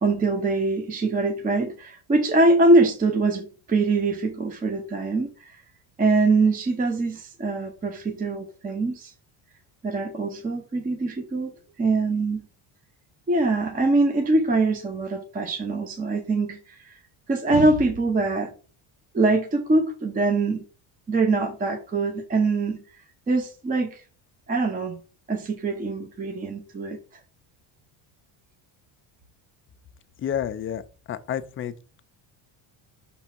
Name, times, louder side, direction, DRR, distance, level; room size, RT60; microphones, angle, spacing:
voice 1, 0.0-5.5 6.0-9.1 9.8-11.5 11.8-12.4 13.3-16.9 17.3-18.5 19.1-20.6 21.1-22.8 23.3-24.0 24.5-25.0 25.3-27.0, right 2 dB, 15° right, 0.7 m, -23 dB
voice 2, 30.2-30.8 31.1-31.7, left 9 dB, 30° left, 0.4 m, -29 dB
6.0 x 3.5 x 5.8 m
cardioid pair, 145°, 49 cm